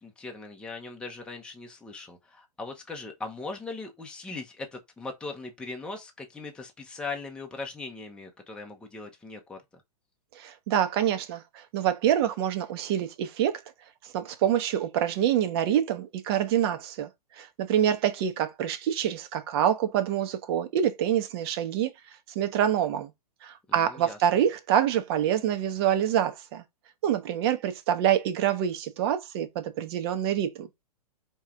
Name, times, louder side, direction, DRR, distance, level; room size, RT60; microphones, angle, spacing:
voice 1, 0.0-9.6 23.7-24.2, left 3 dB, 5° left, 0.8 m, -39 dB
voice 2, 10.3-13.5 14.0-17.1 17.4-21.9 22.3-23.1 23.4-26.6 27.0-30.8, right 10 dB, 40° right, 1.0 m, -26 dB
4.6 x 3.1 x 3.4 m
figure-of-eight pair, 110°, 20 cm